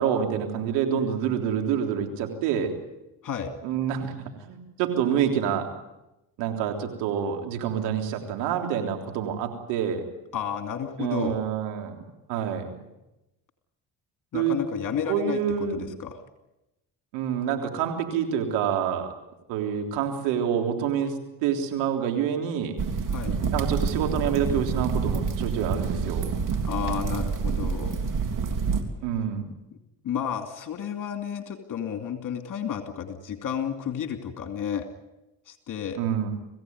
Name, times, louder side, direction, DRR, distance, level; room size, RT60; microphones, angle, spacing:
voice 1, 0.0-2.7 3.6-5.7 6.4-10.0 11.0-12.8 14.3-14.6 15.1-15.9 17.1-19.1 19.5-21.1 21.4-22.8 23.5-26.3 29.0-29.5 36.0-36.3, right 8 dB, 90° right, 4 dB, 3.6 m, -27 dB
voice 2, 10.3-11.4 14.3-16.2 23.1-23.4 26.7-28.0 30.0-34.8 35.5-36.0, left 8 dB, 50° left, 5 dB, 2.7 m, -32 dB
sound 1, 22.8-28.8, right 5 dB, 50° right, 3.3 m, -27 dB
26.5 x 16.0 x 9.5 m, 0.94 s
supercardioid pair, 75°, 39 cm